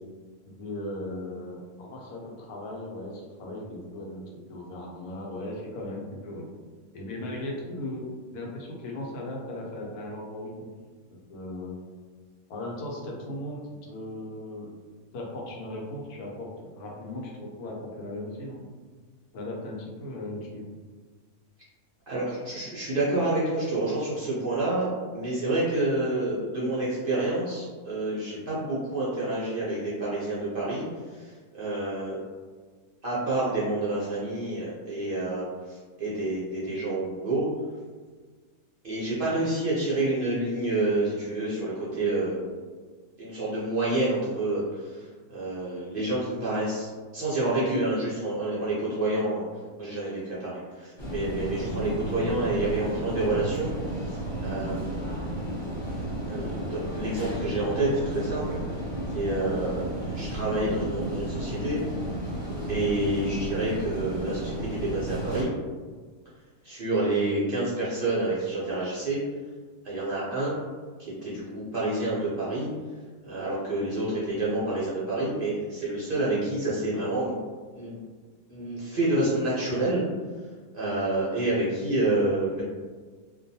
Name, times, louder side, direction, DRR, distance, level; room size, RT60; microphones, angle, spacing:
voice 1, 0.5-6.5 6.9-8.0 8.3-10.7 11.3-11.8 12.5-13.6 13.9-14.7 15.1-18.6 19.3-20.7, left 1 dB, 80° left, -2 dB, 1.1 m, -37 dB
voice 2, 22.1-32.2 33.0-37.5 38.8-42.5 43.2-49.4 49.8-55.1 56.3-58.6 59.1-61.8 62.7-65.5 66.6-69.2 69.8-70.5 71.0-72.7 73.2-77.4 77.7-78.0 78.5-80.0 80.7-82.6, right 2 dB, 55° right, -8 dB, 0.6 m, -28 dB
sound 1, 51.0-65.5, right 1 dB, 30° left, 0.5 m, -33 dB
2.5 x 2.2 x 2.7 m, 1.5 s
omnidirectional pair, 1.6 m